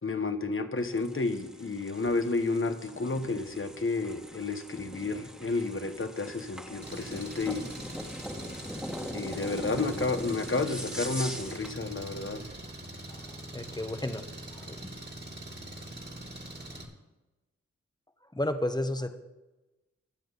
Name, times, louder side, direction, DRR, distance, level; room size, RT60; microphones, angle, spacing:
voice 1, 0.0-7.7 9.1-12.4, left 3 dB, 45° left, 8 dB, 1.1 m, -31 dB
sound 1, 0.8-11.8, equal, 5° right, 1.7 m, -42 dB
Engine, 6.8-16.8, right 1 dB, 35° right, 2.5 m, -43 dB
voice 2, 13.1-14.8 18.3-19.1, left 1 dB, 15° left, 8 dB, 1.1 m, -33 dB
21.5 x 7.8 x 4.0 m, 1.1 s
wide cardioid pair, 75°, 29 cm